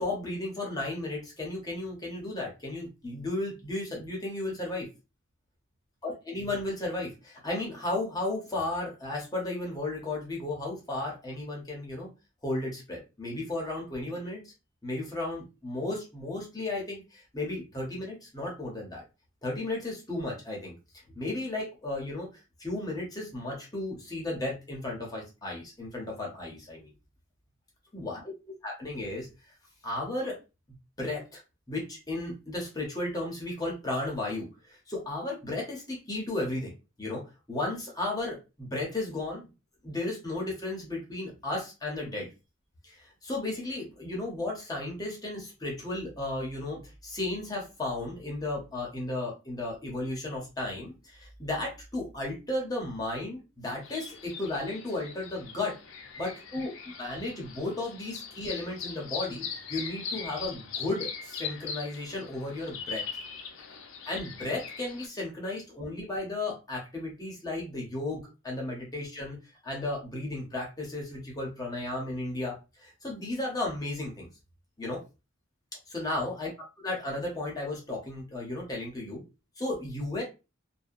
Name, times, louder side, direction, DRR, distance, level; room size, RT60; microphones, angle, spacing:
voice 1, 0.0-4.9 6.0-12.1 12.4-14.5 14.8-19.0 19.4-20.7 21.1-22.3 22.6-26.9 27.9-28.3 28.6-29.3 29.8-30.4 31.0-31.4 31.7-36.7 37.0-39.5 39.8-42.3 42.8-55.7 56.2-63.0 64.1-69.4 69.6-74.3 74.8-75.0 75.9-76.5 76.8-79.2 79.6-80.2, left 2 dB, 20° left, -2 dB, 0.8 m, -34 dB
sound 1, 53.8-65.1, left 6 dB, 70° left, 0.5 m, -41 dB
2.7 x 2.2 x 2.4 m, 0.28 s
head